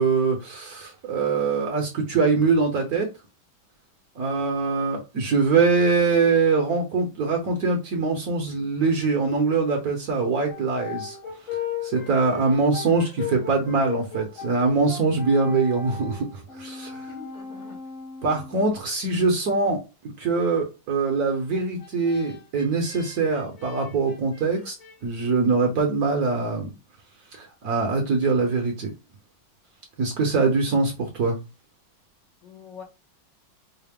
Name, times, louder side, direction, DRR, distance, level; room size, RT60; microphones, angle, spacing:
voice 1, 0.0-3.1 4.2-11.2 11.8-17.1 18.2-24.8 25.0-26.7 27.3-28.9 30.0-31.4, right 4 dB, 60° right, 1.1 m, -23 dB
Brass instrument, 10.5-18.8 21.3-25.0, left 6 dB, 85° left, 2.3 m, -37 dB
voice 2, 17.1-17.8 32.4-32.8, left 6 dB, 70° left, 1.4 m, -43 dB
4.8 x 2.0 x 3.4 m
omnidirectional pair, 2.2 m